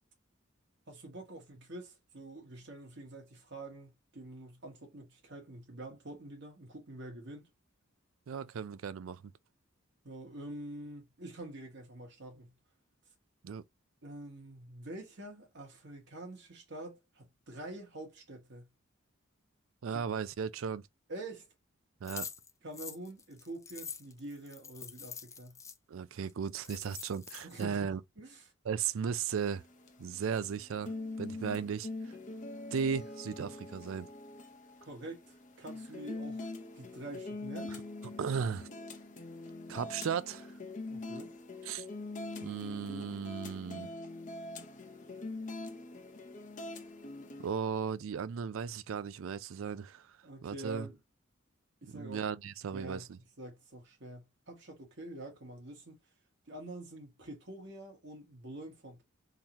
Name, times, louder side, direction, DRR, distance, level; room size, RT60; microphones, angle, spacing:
voice 1, 0.9-7.5 10.0-12.5 14.0-18.7 19.9-20.0 21.1-21.5 22.6-25.6 27.4-28.5 34.8-36.5 36.7-37.7 40.9-41.3 50.2-51.0 51.8-52.2 52.7-53.1 53.4-56.0 56.5-59.0, right 2 dB, 55° right, 1.7 m, -46 dB
voice 2, 8.3-9.2 13.4-13.6 19.8-20.9 22.0-22.3 25.9-28.0 28.6-29.6 30.0-30.9 31.2-31.9 32.7-34.1 37.7-37.8 38.2-38.7 39.7-40.5 41.7-41.8 42.4-43.9 47.4-50.1 50.4-50.9 51.9-53.2, right 6 dB, 75° right, 0.4 m, -36 dB
sound 1, 22.1-25.8 26.3-26.4 26.6-27.6, left 6 dB, 15° left, 0.3 m, -45 dB
sound 2, 29.3-47.5, left 2 dB, 35° left, 0.7 m, -44 dB
3.9 x 2.8 x 2.9 m
head